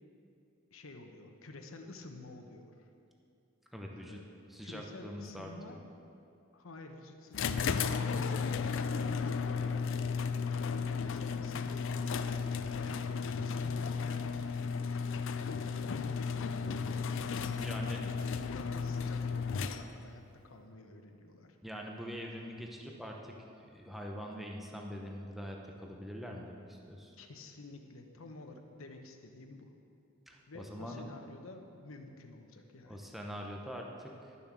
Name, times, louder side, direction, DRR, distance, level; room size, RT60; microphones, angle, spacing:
voice 1, 0.7-2.9 3.9-5.8 6.5-17.4 17.8-18.1 18.5-21.6 27.2-29.7 30.5-33.1, left 2 dB, 85° left, 5 dB, 1.0 m, -50 dB
voice 2, 3.7-4.2 4.5-5.8 17.6-18.0 21.6-23.3 23.7-27.1 30.3-31.0 32.9-34.4, equal, ahead, 0 dB, 0.7 m, -44 dB
sound 1, 7.3-20.1, left 5 dB, 65° left, 0.5 m, -34 dB
12.0 x 7.1 x 6.2 m, 2.6 s
head